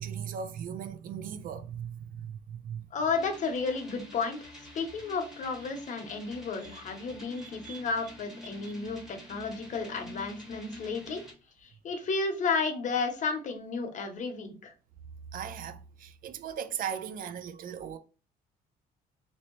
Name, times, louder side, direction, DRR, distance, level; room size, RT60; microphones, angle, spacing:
voice 1, 0.0-2.9 6.6-6.8 7.4-7.8 8.6-8.7 15.3-18.0, right 8 dB, 55° right, 0.4 m, -38 dB
voice 2, 2.9-11.2 11.6-14.7, left 4 dB, 45° left, 0.8 m, -32 dB
sound 1, 3.1-11.3, left 1 dB, 5° right, 1.2 m, -48 dB
3.0 x 2.7 x 3.0 m
cardioid pair, 110°, 17 cm